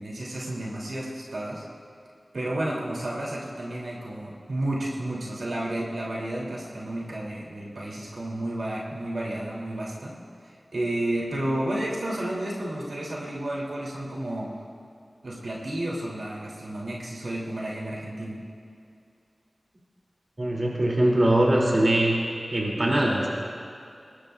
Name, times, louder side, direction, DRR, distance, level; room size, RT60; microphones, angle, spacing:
voice 1, 0.0-1.6 2.3-10.2 10.4-14.5 15.2-18.4, right 1 dB, 80° right, -5 dB, 3.4 m, -31 dB
voice 2, 20.4-22.2 22.5-23.3, right 1 dB, 45° right, -3 dB, 3.2 m, -22 dB
24.0 x 20.0 x 2.6 m, 2.5 s
wide cardioid pair, 60°, 0 cm